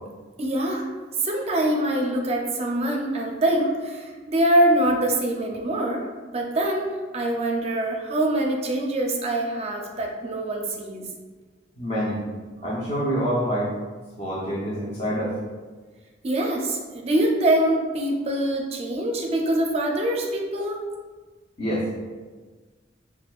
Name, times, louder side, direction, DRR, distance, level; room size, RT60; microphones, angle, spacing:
voice 1, 0.4-0.9 1.2-11.1 16.2-20.8, right 1 dB, 35° right, 1 dB, 0.5 m, -24 dB
voice 2, 11.8-12.2 12.6-13.7 14.2-15.4 21.6-21.9, equal, 35° left, -6 dB, 0.7 m, -26 dB
6.0 x 2.3 x 2.3 m, 1.4 s
head